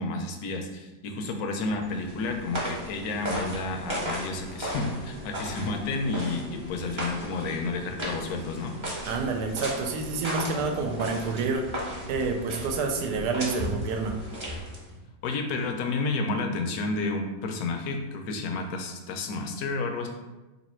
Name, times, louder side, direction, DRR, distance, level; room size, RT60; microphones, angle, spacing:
voice 1, 0.0-8.7 15.2-20.1, left 3 dB, 70° left, 4 dB, 1.0 m, -31 dB
sound 1, 1.7-15.0, equal, 30° right, 0.6 m, -36 dB
voice 2, 9.1-11.7 12.1-14.2, right 4 dB, 80° right, 4 dB, 1.2 m, -28 dB
3.2 x 2.6 x 4.2 m, 1.1 s
omnidirectional pair, 1.8 m